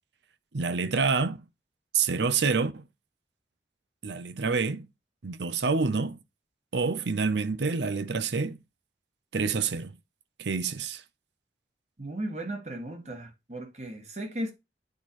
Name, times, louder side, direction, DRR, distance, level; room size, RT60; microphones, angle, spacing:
voice 1, 0.5-1.4 1.9-2.8 4.0-4.9 5.2-6.2 6.7-8.6 9.3-9.9 10.4-11.0, right 4 dB, 85° right, 0.7 m, -27 dB
voice 2, 12.0-14.5, right 1 dB, 40° right, 1.6 m, -36 dB
9.3 x 4.3 x 3.0 m
head